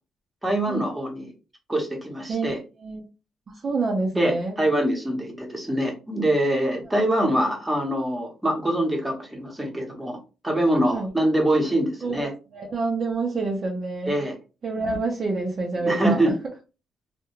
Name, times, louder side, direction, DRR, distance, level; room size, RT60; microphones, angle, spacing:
voice 1, 0.4-1.3 1.7-2.6 4.1-10.2 10.4-12.3 14.0-14.3 15.8-16.3, right 1 dB, 10° right, 0 dB, 0.9 m, -24 dB
voice 2, 3.5-4.6 6.9-7.0 10.9-11.1 12.0-14.2 14.6-16.2, right 3 dB, 40° right, 0 dB, 0.5 m, -27 dB
2.3 x 2.1 x 3.0 m, 0.31 s
cardioid pair, 90°, 0 cm